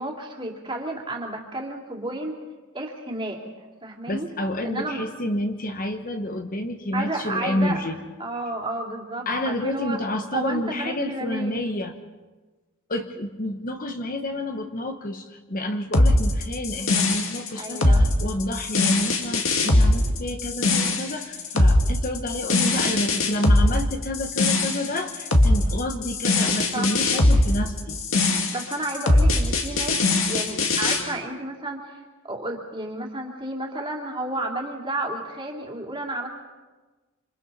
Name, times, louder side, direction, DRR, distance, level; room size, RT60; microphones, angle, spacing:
voice 1, 0.0-2.4 2.7-3.4 3.8-4.3 4.6-5.0 6.9-7.8 8.2-10.0 10.3-11.6 17.5-18.0 26.7-26.9 28.5-30.0 30.3-36.3, right 2 dB, 20° right, 0 dB, 2.9 m, -31 dB
voice 2, 4.1-8.0 9.3-11.9 12.9-28.0, left 1 dB, 40° left, 6 dB, 1.2 m, -29 dB
sound 1, 15.9-31.0, left 2 dB, 60° left, 2.1 m, -21 dB
27.5 x 26.5 x 4.2 m, 1.2 s
head